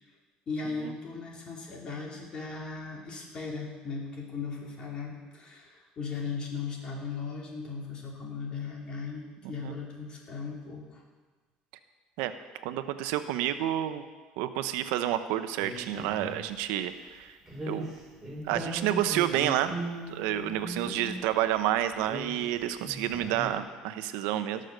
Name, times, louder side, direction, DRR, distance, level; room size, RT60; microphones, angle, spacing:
voice 1, 0.5-11.0, left 5 dB, 35° left, -1 dB, 3.0 m, -37 dB
voice 2, 9.4-9.7 12.2-12.3 12.6-14.0 14.4-17.3 17.7-17.9 18.5-19.7 20.1-24.6, right 12 dB, 85° right, 10 dB, 0.8 m, -29 dB
sound 1, 15.6-16.5 17.5-21.4 21.9-23.6, right 1 dB, 5° right, 3.8 m, -38 dB
18.0 x 6.5 x 6.6 m, 1.3 s
cardioid pair, 145°, 3 cm